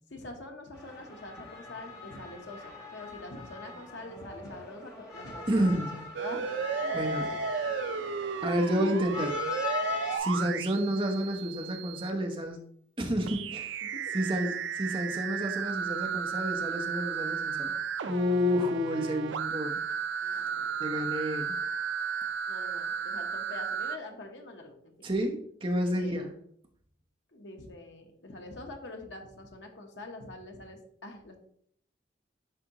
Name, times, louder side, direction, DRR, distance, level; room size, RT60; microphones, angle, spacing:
voice 1, 0.1-5.7 5.9-6.5 6.8-7.4 13.8-14.1 20.2-20.8 22.5-25.1 25.9-26.3 27.3-31.3, left 2 dB, 85° left, 3 dB, 1.1 m, -45 dB
sound 1, 0.7-10.2, left 5 dB, 20° left, 2.0 m, -40 dB
voice 2, 5.5-6.0 6.9-7.3 8.4-9.4 10.2-12.6 13.0-13.8 14.1-17.7 18.1-19.8 20.8-21.6 25.0-26.3, equal, 30° right, 2 dB, 0.9 m, -30 dB
sound 2, 6.1-12.1 13.3-24.0, right 6 dB, 90° right, 0.4 m, -34 dB
10.0 x 3.6 x 3.0 m, 0.65 s
head